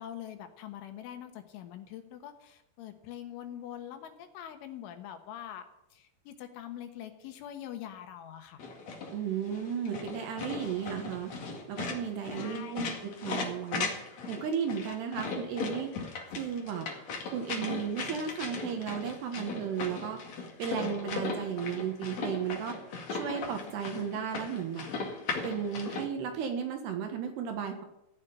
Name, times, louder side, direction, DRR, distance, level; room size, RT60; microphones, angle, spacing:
voice 1, 0.0-5.6 5.9-8.6 12.3-12.8 14.9-15.0, left 10 dB, 75° left, 7 dB, 3.5 m, -44 dB
sound 1, 8.6-26.0, left 4 dB, 45° left, 2.3 m, -38 dB
voice 2, 9.1-11.3 11.7-13.9 14.3-15.9 16.3-16.9 17.3-20.2 20.6-22.8 23.1-24.9 25.4-27.8, right 7 dB, 65° right, 5 dB, 3.1 m, -34 dB
16.0 x 7.5 x 9.9 m, 0.88 s
omnidirectional pair, 5.9 m